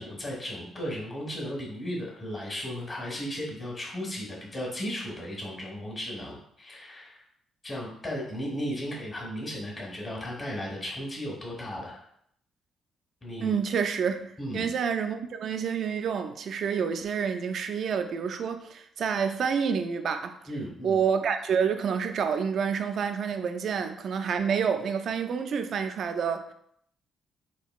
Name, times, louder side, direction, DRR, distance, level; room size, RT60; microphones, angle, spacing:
voice 1, 0.0-7.2 7.6-12.0 13.2-13.5 14.4-14.7 20.5-21.0, equal, 30° left, 1.3 m, -35 dB
voice 2, 13.4-20.4 20.8-26.5, right 6 dB, 60° right, 0.3 m, -28 dB
3.7 x 2.8 x 2.3 m
cardioid pair, 90°, 0 cm